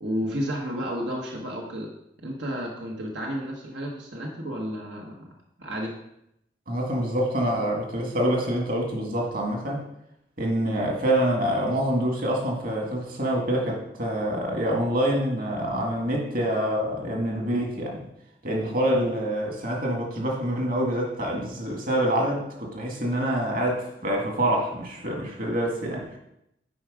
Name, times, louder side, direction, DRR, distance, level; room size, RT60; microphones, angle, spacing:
voice 1, 0.0-1.9 2.2-5.3 5.6-5.9, equal, 90° right, -1 dB, 1.3 m, -31 dB
voice 2, 6.7-9.8 10.4-18.0 18.4-26.2, right 1 dB, 50° right, 0 dB, 2.0 m, -26 dB
9.3 x 4.8 x 5.0 m, 0.80 s
head